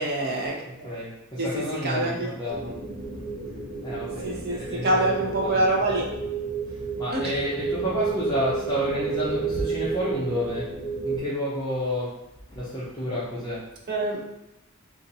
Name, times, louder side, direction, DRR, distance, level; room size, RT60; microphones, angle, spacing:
voice 1, 0.0-0.9 1.4-2.3 4.2-6.1 7.1-7.4 13.9-14.2, right 2 dB, 50° right, -2 dB, 0.8 m, -26 dB
voice 2, 0.6-2.7 3.8-5.6 7.0-10.7 11.0-12.2 12.5-13.7, equal, 20° left, -10 dB, 0.7 m, -30 dB
sound 1, 2.5-11.2, right 4 dB, 70° right, 1.1 m, -31 dB
2.6 x 2.6 x 4.1 m, 0.88 s
head